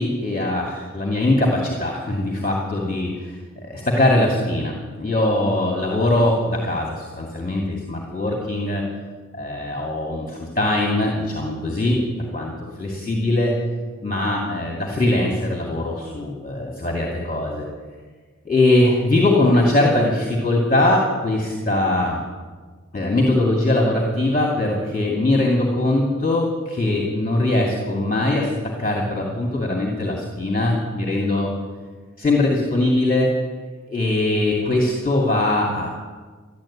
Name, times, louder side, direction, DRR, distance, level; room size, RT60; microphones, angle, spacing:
voice 1, 0.0-8.9 9.3-12.5 12.8-13.5 14.0-17.6 18.4-22.2 22.9-28.5 28.8-31.5 32.2-33.3 33.9-35.9, left 1 dB, 30° left, -1 dB, 2.5 m, -21 dB
14.0 x 11.0 x 8.7 m, 1.4 s
wide cardioid pair, 85°, 30 cm